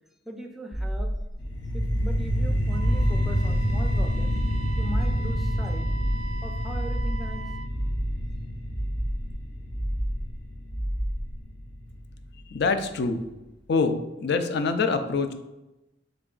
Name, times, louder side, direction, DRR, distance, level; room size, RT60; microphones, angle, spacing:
voice 1, 0.3-1.1 1.7-4.4 4.8-5.9 6.4-7.4, equal, ahead, 2 dB, 0.4 m, -39 dB
sound 1, 0.7-1.3 1.7-2.3 2.7-3.3 3.7-4.3 4.7-5.3 5.7-6.3 6.7-7.3 7.7-8.3 8.7-9.3 9.7-10.3 10.7-11.4, equal, 15° left, 1.0 m, -30 dB
sound 2, 1.4-12.4, equal, 85° left, 0.8 m, -28 dB
Wind instrument woodwind instrument, 2.7-7.7, right 4 dB, 80° right, 0.4 m, -41 dB
voice 2, 12.5-13.3 13.7-15.3, left 4 dB, 60° left, 8 dB, 0.4 m, -25 dB
3.9 x 3.4 x 3.8 m, 0.97 s
head